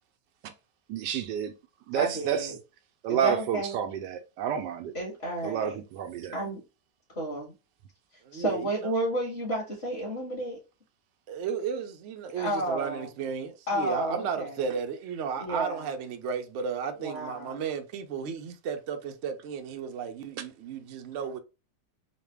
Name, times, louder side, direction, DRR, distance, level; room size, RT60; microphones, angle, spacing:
voice 1, 0.9-1.5 1.9-2.5 3.0-4.9 5.4-6.4, right 9 dB, 90° right, 1.2 m, -29 dB
voice 2, 1.9-2.6 3.1-3.7 4.9-5.8 6.3-6.6 7.2-7.5 8.3-10.6 12.4-13.1 13.7-14.6 15.4-15.9 17.0-17.6, right 1 dB, 40° left, 1.8 m, -31 dB
voice 3, 8.2-8.8 11.3-21.4, right 6 dB, 65° right, 0.7 m, -34 dB
4.0 x 2.2 x 3.3 m
omnidirectional pair, 1.8 m